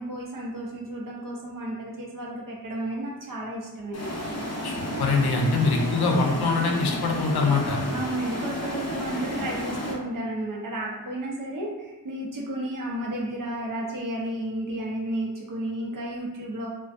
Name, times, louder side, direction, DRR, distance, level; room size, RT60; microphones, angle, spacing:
voice 1, 0.0-4.2 7.9-16.7, right 1 dB, 60° right, -3 dB, 0.7 m, -32 dB
sound 1, 3.9-9.9, left 1 dB, 45° left, 0.6 m, -32 dB
voice 2, 4.6-7.8, left 3 dB, 90° left, 1 dB, 0.5 m, -24 dB
2.5 x 2.3 x 2.3 m, 1.1 s
wide cardioid pair, 90°, 37 cm